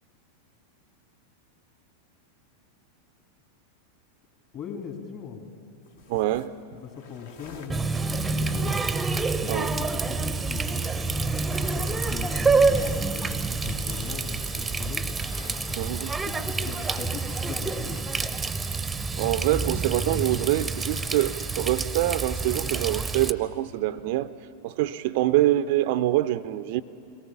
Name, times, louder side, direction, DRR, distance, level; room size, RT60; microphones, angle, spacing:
voice 1, 4.5-5.4 6.7-8.7 9.2-15.0 16.2-18.1, left 7 dB, 35° left, 2.8 m, -40 dB
sound 1, 5.9-9.8 10.3-10.6 10.9-18.1 20.3-22.0, left 5 dB, 55° left, 1.4 m, -49 dB
voice 2, 6.1-6.5 9.5-9.7 15.8-16.1 19.2-24.3 24.6-26.8, right 14 dB, 50° right, 0.5 m, -25 dB
Water tap faucet, 7.7-23.3, right 3 dB, 10° right, 0.7 m, -27 dB
23.5 x 18.0 x 7.2 m
figure-of-eight pair, 90°, 0 cm